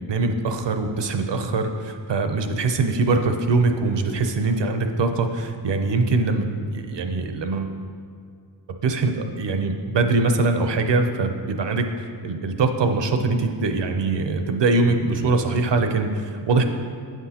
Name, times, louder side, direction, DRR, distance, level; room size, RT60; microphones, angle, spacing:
voice 1, 0.1-7.7 8.8-16.6, right 3 dB, 65° right, 6 dB, 0.6 m, -22 dB
9.0 x 6.0 x 2.8 m, 2.2 s
wide cardioid pair, 90°, 47 cm